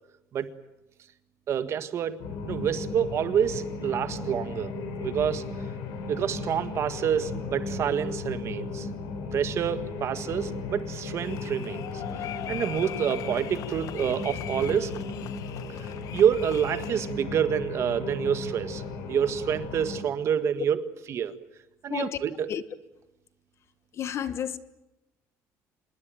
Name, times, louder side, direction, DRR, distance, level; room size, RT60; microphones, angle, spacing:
voice 1, 1.5-2.2 2.4-4.7 5.0-5.4 6.1-8.9 9.3-14.9 16.1-18.8 19.1-20.8 21.1-21.3 21.8-22.5, right 8 dB, 45° right, 1.6 m, -27 dB
sound 1, 2.2-20.0, left 3 dB, 85° left, 4.1 m, -36 dB
sound 2, 11.2-17.1, left 12 dB, 65° left, 1.0 m, -41 dB
voice 2, 23.9-24.6, left 9 dB, 45° left, 1.4 m, -31 dB
26.0 x 21.0 x 9.1 m
cardioid pair, 145°, 7 cm